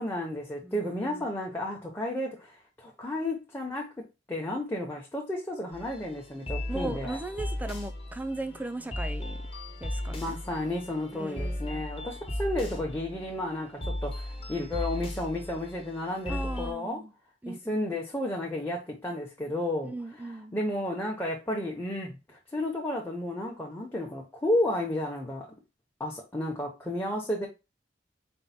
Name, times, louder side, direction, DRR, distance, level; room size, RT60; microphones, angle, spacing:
voice 1, 0.0-7.2 10.1-17.0 17.5-25.5 26.0-27.5, left 1 dB, 10° left, 0.8 m, -32 dB
voice 2, 0.6-1.3 6.7-9.4 9.8-10.4 11.1-11.8 16.3-17.1 17.4-17.8 19.8-20.6, right 2 dB, 10° right, 0.4 m, -38 dB
sound 1, 5.7-16.7, left 1 dB, 30° left, 1.1 m, -36 dB
4.5 x 2.2 x 4.2 m
head